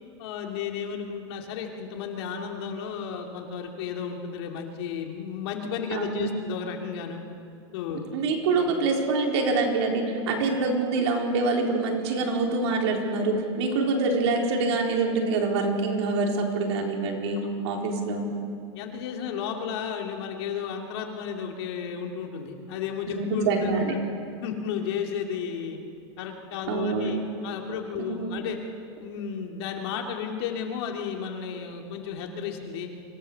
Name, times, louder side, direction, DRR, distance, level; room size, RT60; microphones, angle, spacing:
voice 1, 0.2-7.2 7.7-8.0 8.5-8.7 17.4-17.5 18.7-24.0 24.4-25.8 26.2-28.6 29.0-32.9, left 7 dB, 65° left, 2 dB, 2.6 m, -33 dB
voice 2, 5.9-6.3 7.9-18.2 23.2-24.0 26.7-27.1 28.0-28.3, right 3 dB, 75° right, 0 dB, 4.0 m, -25 dB
25.0 x 16.0 x 6.8 m, 2.4 s
supercardioid pair, 155°, 14 cm